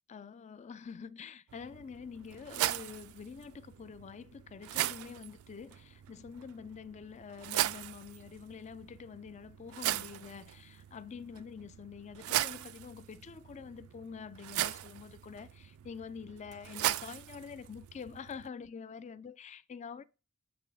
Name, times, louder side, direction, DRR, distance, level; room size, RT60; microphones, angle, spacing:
voice 1, 0.1-20.0, left 6 dB, 30° left, 0.3 m, -46 dB
sound 1, 1.5-18.5, right 14 dB, 70° right, 0.3 m, -39 dB
7.8 x 3.9 x 3.9 m
head